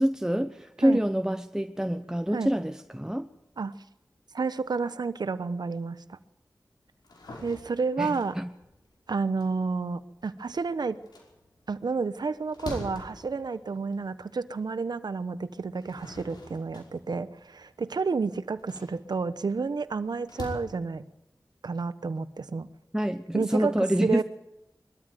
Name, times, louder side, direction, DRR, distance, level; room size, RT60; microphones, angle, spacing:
voice 1, 0.0-3.3 8.0-8.5 22.9-24.2, equal, 10° right, 1.0 m, -26 dB
voice 2, 4.3-6.2 7.4-8.4 9.1-11.0 11.7-21.0 21.6-22.7 23.3-24.2, right 4 dB, 80° right, 1.1 m, -30 dB
Fridge open and close, 6.9-10.5 10.9-14.4 14.9-15.0 15.6-20.5, left 2 dB, 90° left, 5.4 m, -44 dB
22.5 x 13.5 x 9.3 m
cardioid pair, 45°, 7 cm